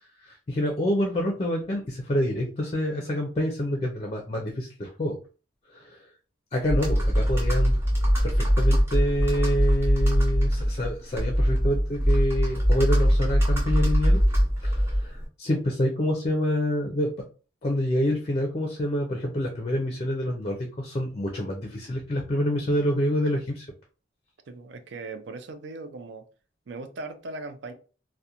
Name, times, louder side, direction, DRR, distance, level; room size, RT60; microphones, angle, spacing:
voice 1, 0.2-5.2 5.7-6.0 6.5-7.7 8.2-14.2 14.6-17.1 17.6-23.7, left 1 dB, 30° left, 0.4 m, -27 dB
Computer keyboard, 6.6-15.2, equal, 10° right, 0.6 m, -22 dB
voice 2, 24.5-26.2 26.7-27.7, right 3 dB, 65° right, 0.4 m, -38 dB
2.4 x 2.1 x 2.8 m
head